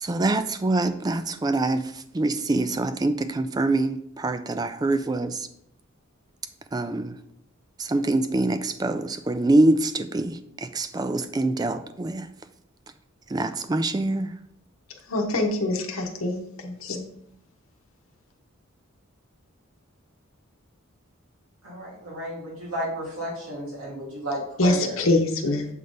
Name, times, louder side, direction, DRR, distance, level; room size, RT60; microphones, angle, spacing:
voice 1, 0.0-5.5 6.7-7.2 7.8-12.3 13.3-14.3, right 2 dB, 20° right, 11 dB, 0.3 m, -25 dB
voice 2, 15.1-17.0 24.6-25.7, left 2 dB, 75° left, 3 dB, 0.9 m, -24 dB
voice 3, 21.6-25.0, equal, 85° right, -6 dB, 1.9 m, -33 dB
7.7 x 3.7 x 3.9 m, 0.73 s
head